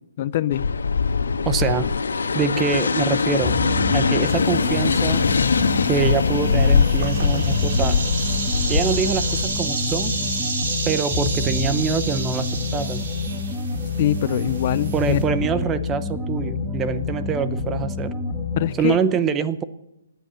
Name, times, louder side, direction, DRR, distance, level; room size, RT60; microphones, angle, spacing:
voice 1, 0.2-0.6 14.0-15.2 18.6-19.0, left 12 dB, 30° left, 17 dB, 0.5 m, -23 dB
sound 1, 0.5-9.4, left 5 dB, 80° left, 1.5 m, -22 dB
voice 2, 1.4-1.9 2.3-3.6 3.9-5.2 5.9-8.0 8.7-10.1 10.9-13.0 14.9-18.1 18.8-19.6, right 6 dB, 10° right, 13 dB, 0.6 m, -25 dB
sound 2, 3.4-18.8, left 3 dB, 5° left, 1.4 m, -27 dB
sound 3, 4.3-15.2, right 3 dB, 40° right, 4.9 m, -31 dB
18.5 x 10.5 x 6.9 m, 0.89 s
hypercardioid pair, 170°, 0 cm